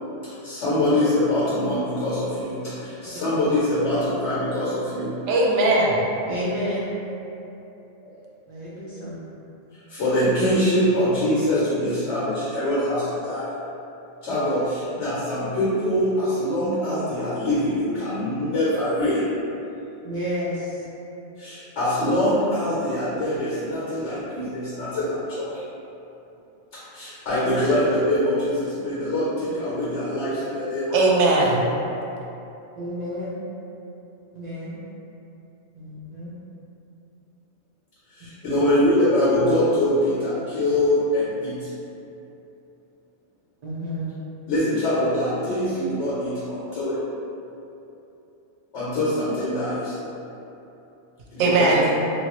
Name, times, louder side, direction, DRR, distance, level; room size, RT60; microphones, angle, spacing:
voice 1, 0.2-5.2 7.0-7.1 8.0-8.2 9.7-13.5 14.2-19.3 21.0-21.1 21.4-25.6 26.7-31.0 38.1-41.7 44.5-47.0 48.7-50.0 51.3-51.7, left 1 dB, 80° left, -9 dB, 1.0 m, -24 dB
voice 2, 5.3-6.1 30.9-31.6 51.4-51.9, right 2 dB, 85° right, -2 dB, 0.9 m, -19 dB
voice 3, 6.3-6.9 8.5-9.2 20.0-20.8 32.8-33.4 34.3-34.8 35.7-36.3 43.6-44.1, equal, 55° right, -9 dB, 0.5 m, -30 dB
2.9 x 2.3 x 2.9 m, 2.9 s
omnidirectional pair, 1.2 m